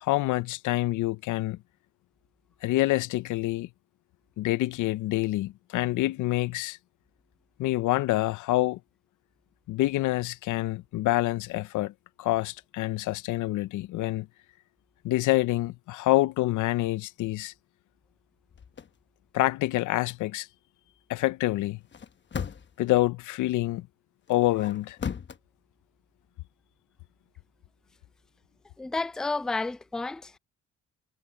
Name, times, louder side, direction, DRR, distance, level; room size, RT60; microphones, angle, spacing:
voice 1, 0.0-1.6 2.6-3.7 4.4-6.8 7.6-8.8 9.7-11.9 12.2-14.3 15.0-17.5 19.3-20.5 21.1-21.8 22.8-23.9 24.3-25.0, left 17 dB, 85° left, 0.6 m, -27 dB
sound 1, 18.5-18.9 21.8-22.9 24.3-25.4, left 7 dB, 40° left, 1.1 m, -37 dB
voice 2, 28.8-30.4, left 3 dB, ahead, 0.4 m, -31 dB
cardioid pair, 90°, 30 cm